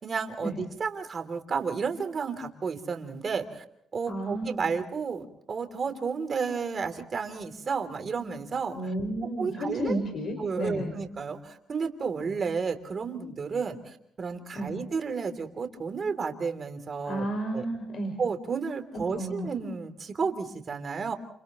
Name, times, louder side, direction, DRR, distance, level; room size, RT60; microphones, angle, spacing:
voice 1, 0.0-3.6 3.9-8.9 9.4-10.0 10.4-17.3 17.5-17.7 18.2-21.2, right 5 dB, 45° right, 7 dB, 3.2 m, -32 dB
voice 2, 4.1-4.5 8.7-10.9 14.5-14.7 17.0-18.1 18.9-19.3, right 1 dB, 60° left, 3 dB, 5.4 m, -32 dB
29.5 x 29.0 x 3.1 m, 0.73 s
cardioid pair, 90°, 0 cm